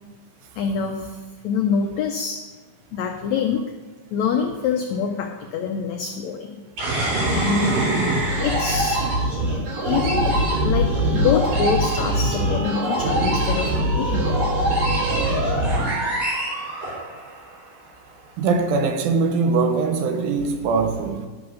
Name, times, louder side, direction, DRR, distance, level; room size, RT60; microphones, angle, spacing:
voice 1, 0.5-1.2 1.4-2.4 2.9-3.7 4.1-6.6 7.3-7.7 8.4-9.0 9.8-10.3 10.6-14.5, left 6 dB, 85° left, 1.6 m, -25 dB
sound 1, 6.8-17.4, right 1 dB, 55° right, 4.8 m, -22 dB
voice 2, 18.4-21.3, right 4 dB, 85° right, 2.7 m, -22 dB
11.5 x 6.3 x 6.2 m
omnidirectional pair, 4.0 m